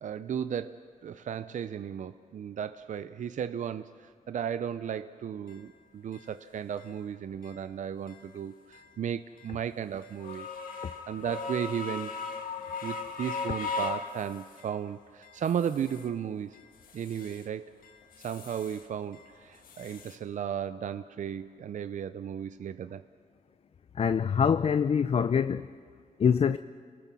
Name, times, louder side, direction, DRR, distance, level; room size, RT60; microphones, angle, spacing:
voice 1, 0.0-10.5 11.1-12.1 12.8-16.6 16.9-17.7 18.2-23.0, right 8 dB, 65° right, 0.5 m, -35 dB
sound 1, 5.5-5.6 6.1-6.2 6.8-6.9 7.4-7.6 8.1-8.3 8.7-8.9 9.4-9.5 10.0-14.8 15.2-16.1 16.5-17.5 17.8-18.9 19.1-20.2, left 4 dB, 90° left, 1.7 m, -39 dB
voice 2, 24.0-25.7 26.2-26.6, left 7 dB, 45° left, 0.5 m, -24 dB
28.5 x 19.5 x 6.1 m
cardioid pair, 90°, 14 cm